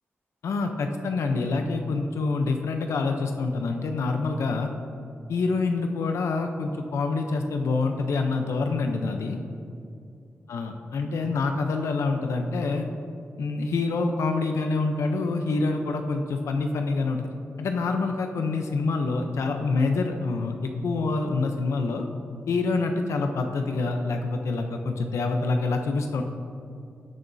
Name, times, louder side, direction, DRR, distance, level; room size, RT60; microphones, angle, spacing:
voice 1, 0.4-4.7 5.3-9.4 10.5-12.9 13.4-17.3 17.6-22.1 22.5-26.2, left 3 dB, 90° left, 5 dB, 0.6 m, -26 dB
16.5 x 6.9 x 2.7 m, 2.5 s
wide cardioid pair, 140°, 5 cm